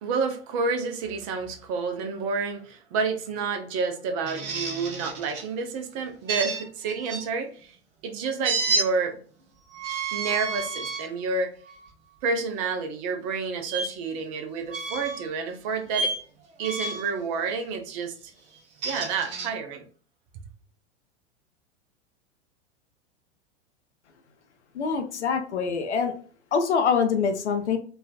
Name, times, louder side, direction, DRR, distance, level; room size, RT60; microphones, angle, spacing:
voice 1, 0.0-7.8 8.0-9.2 10.1-11.5 12.2-16.1 16.6-18.1 18.8-19.8, right 4 dB, 30° right, 0.5 m, -29 dB
sound 1, 4.2-5.5 6.3-7.2 8.4-8.9 9.7-11.1 11.7-11.9 13.7-13.8 14.7-15.3 15.9-16.2 16.6-17.1 18.5-19.5, right 4 dB, 55° right, 0.8 m, -30 dB
voice 2, 24.7-26.1 26.5-27.8, left 6 dB, 70° left, 0.5 m, -24 dB
3.2 x 2.2 x 2.2 m
figure-of-eight pair, 90°, 35 cm